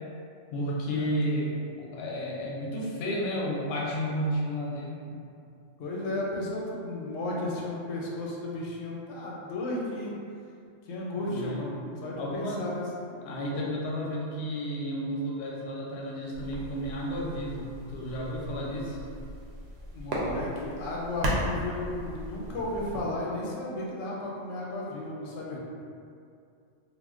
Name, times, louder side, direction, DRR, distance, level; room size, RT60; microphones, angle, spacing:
voice 1, 0.5-1.5 1.8-5.2 11.3-11.7 12.2-12.6 13.2-19.0 25.5-25.6, equal, 65° left, -4 dB, 0.8 m, -32 dB
voice 2, 5.8-10.1 10.8-13.1 19.9-25.6, left 1 dB, 90° left, -3 dB, 1.0 m, -34 dB
sound 1, 16.3-23.0, equal, 65° right, 0.8 m, -36 dB
2.3 x 2.1 x 3.5 m, 2.5 s
omnidirectional pair, 1.3 m